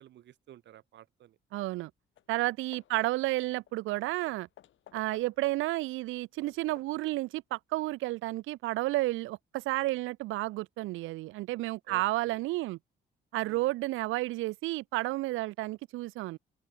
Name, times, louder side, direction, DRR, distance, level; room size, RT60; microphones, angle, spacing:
voice 1, 0.0-1.4 2.9-3.1 11.9-12.4 13.4-13.7, right 12 dB, 65° right, 0.8 m, -53 dB
voice 2, 1.5-1.9 2.3-4.5 4.9-12.8 13.3-16.4, right 18 dB, 85° right, 0.4 m, -31 dB
Hammer / Wood, 1.8-1.9 2.2-2.4 2.7-5.6 6.1-7.1, left 12 dB, 75° left, 3.4 m, -58 dB
open air
cardioid pair, 90°, 20 cm